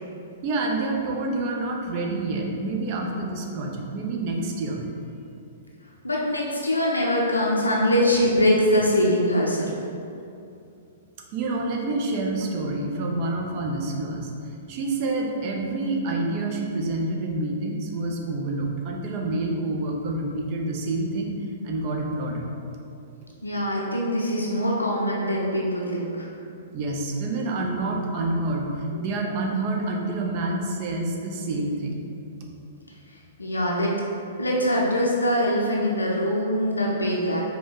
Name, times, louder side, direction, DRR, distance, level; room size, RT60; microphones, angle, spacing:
voice 1, 0.4-4.9 11.3-14.3 14.7-21.3 21.6-22.4 26.7-28.7 29.0-32.0, right 2 dB, 40° right, 0 dB, 0.6 m, -27 dB
voice 2, 6.0-9.7 23.4-26.3 33.4-33.9 34.4-37.4, equal, 80° left, -3 dB, 0.5 m, -23 dB
4.8 x 2.3 x 3.8 m, 2.6 s
figure-of-eight pair, 110°, 0 cm